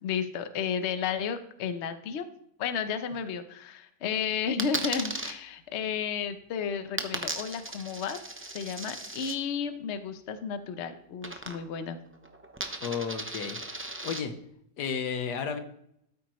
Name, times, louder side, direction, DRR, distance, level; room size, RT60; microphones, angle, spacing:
voice 1, 0.0-2.2 2.6-8.2 8.5-12.0, left 7 dB, 55° left, 10 dB, 0.9 m, -32 dB
Coin (dropping), 4.6-5.3 7.0-9.4 11.2-11.9 12.1-14.2, right 1 dB, 20° right, 0.3 m, -36 dB
voice 2, 12.8-13.6 14.0-14.3 14.8-15.6, left 6 dB, 90° left, 7 dB, 1.6 m, -32 dB
13.0 x 8.4 x 3.1 m, 0.72 s
omnidirectional pair, 1.7 m